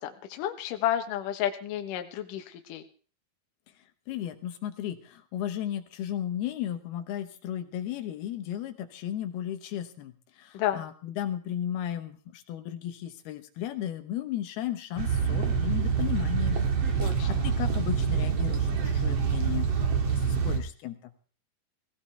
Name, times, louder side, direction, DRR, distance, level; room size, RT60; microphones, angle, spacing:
voice 1, 0.0-2.8 10.5-10.8 17.0-17.3, left 11 dB, 70° left, 6 dB, 2.5 m, -31 dB
voice 2, 4.1-10.1 10.4-17.0 17.3-19.7 20.0-21.0, left 11 dB, 85° left, 7 dB, 3.0 m, -35 dB
sound 1, 15.0-20.6, right 6 dB, 45° right, 2.4 m, -26 dB
18.0 x 16.5 x 3.4 m, 0.40 s
omnidirectional pair, 4.4 m